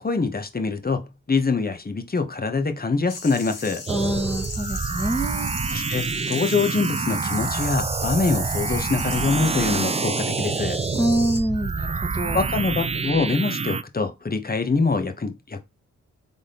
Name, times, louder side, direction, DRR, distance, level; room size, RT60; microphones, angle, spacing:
voice 1, 0.0-3.8 5.7-10.8 12.3-15.6, left 4 dB, 30° left, 1.1 m, -24 dB
sound 1, 3.1-11.4, left 4 dB, 70° left, 1.8 m, -38 dB
voice 2, 3.9-5.5 10.9-12.4, right 1 dB, 10° left, 1.7 m, -25 dB
sound 2, 3.9-13.8, right 4 dB, 20° right, 0.4 m, -27 dB
3.9 x 3.6 x 3.8 m
cardioid pair, 55°, 32 cm